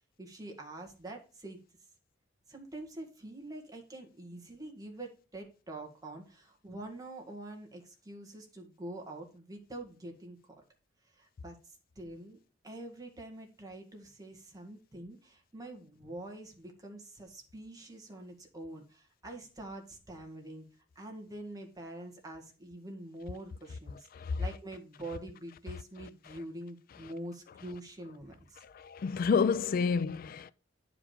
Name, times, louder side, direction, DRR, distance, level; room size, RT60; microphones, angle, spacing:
voice 1, 0.2-1.6 2.5-10.6 11.0-12.4 12.6-20.7 21.0-28.6, right 1 dB, 20° right, 1.9 m, -45 dB
voice 2, 24.1-24.4 26.3-26.4 28.6-30.5, left 5 dB, 50° left, 0.3 m, -30 dB
9.9 x 4.9 x 5.0 m
head